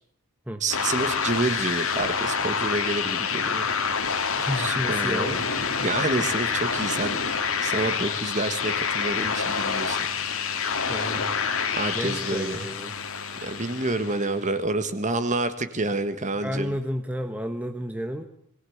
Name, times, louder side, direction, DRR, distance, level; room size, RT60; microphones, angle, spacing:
voice 1, 0.6-3.7 4.6-5.3 5.8-7.2 7.6-10.1 11.8-12.6 13.4-16.8, right 2 dB, 35° right, 11 dB, 1.6 m, -28 dB
sound 1, 0.7-14.4, left 6 dB, 65° left, 2.2 m, -27 dB
voice 2, 4.4-5.4 10.9-11.3 11.9-13.0 16.4-18.2, equal, 5° right, 6 dB, 1.1 m, -31 dB
22.0 x 18.0 x 8.0 m, 0.69 s
head